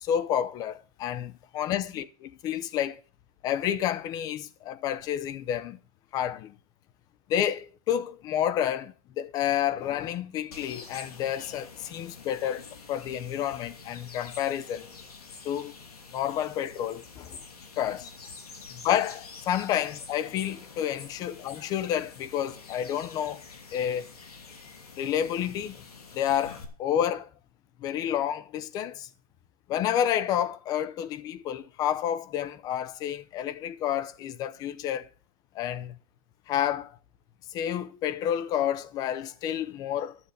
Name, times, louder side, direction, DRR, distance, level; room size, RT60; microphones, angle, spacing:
voice 1, 0.0-2.0 2.4-3.0 3.4-5.8 6.1-6.5 7.3-14.9 15.4-15.7 16.1-17.4 17.8-18.1 18.7-23.4 23.7-24.1 25.0-25.8 26.1-27.3 27.8-29.1 29.7-35.1 35.5-36.0 36.5-37.0 37.5-40.2, left 10 dB, 20° left, 0.6 m, -30 dB
sound 1, 10.5-26.6, left 4 dB, 75° left, 2.7 m, -47 dB
12.0 x 6.9 x 6.6 m
hypercardioid pair, 145°, 20 cm